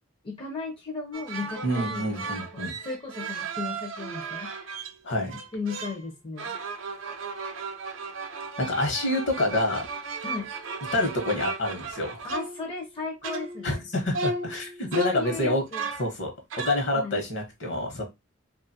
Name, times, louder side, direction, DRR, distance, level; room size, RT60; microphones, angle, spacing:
voice 1, 0.2-4.7 5.3-6.6 10.2-10.5 12.2-13.8 15.0-15.8 16.9-17.2, left 3 dB, 25° left, 0.5 m, -36 dB
sound 1, 1.1-4.9 5.3-6.1 6.4-12.9 13.2-13.8 14.1-16.1 16.5-16.8, right 3 dB, 75° right, 0.5 m, -35 dB
voice 2, 1.6-2.8 5.0-5.4 8.6-9.9 10.9-12.2 13.6-15.6 16.0-16.3 16.6-18.1, left 1 dB, 65° left, 1.0 m, -27 dB
2.4 x 2.4 x 2.7 m
head